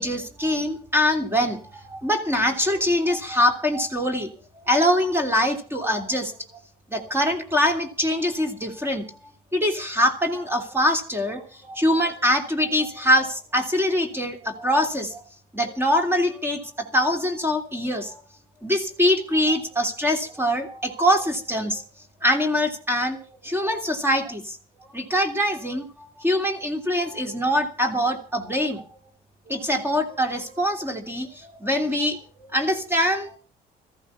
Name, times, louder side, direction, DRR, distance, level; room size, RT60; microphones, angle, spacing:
voice 1, 0.0-4.3 4.6-6.3 6.9-9.0 9.5-15.2 15.5-18.2 18.6-21.8 22.2-24.6 24.9-25.9 26.2-28.8 29.5-33.4, left 1 dB, 15° right, 5 dB, 3.0 m, -23 dB
15.5 x 14.5 x 5.7 m, 0.38 s
cardioid pair, 110°, 17 cm